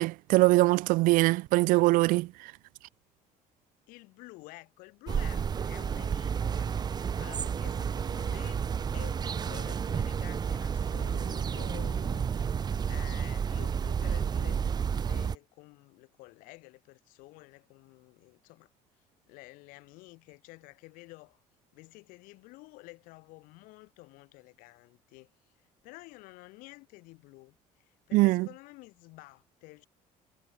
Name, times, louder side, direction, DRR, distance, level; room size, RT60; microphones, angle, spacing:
voice 1, 0.0-2.3 28.1-28.5, right 21 dB, 80° right, 0.8 m, -22 dB
voice 2, 3.9-8.6 8.9-18.7 19.3-21.4 21.7-25.3 25.8-29.9, left 23 dB, 90° left, 7.2 m, -51 dB
sound 1, 5.1-15.4, right 7 dB, 30° right, 1.0 m, -31 dB
cardioid pair, 130°, 14 cm